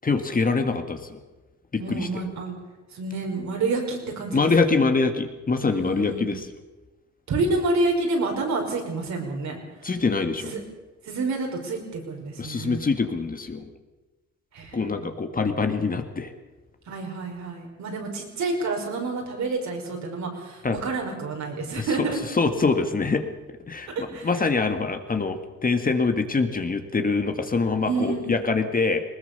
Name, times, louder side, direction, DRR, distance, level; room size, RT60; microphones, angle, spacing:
voice 1, 0.0-1.2 1.7-2.1 4.3-6.5 9.8-10.5 12.4-13.7 14.7-16.3 20.6-20.8 21.8-22.1 22.3-23.2 23.7-29.0, left 4 dB, 30° left, 6 dB, 1.9 m, -24 dB
voice 2, 1.8-2.6 2.9-4.5 4.8-4.9 5.6-6.4 7.3-9.6 10.5-10.6 11.1-12.9 14.5-15.2 16.9-22.2 24.0-24.3 27.8-28.4, right 3 dB, 65° right, 1 dB, 5.6 m, -28 dB
20.0 x 19.5 x 6.9 m, 1.2 s
cardioid pair, 90°, 30 cm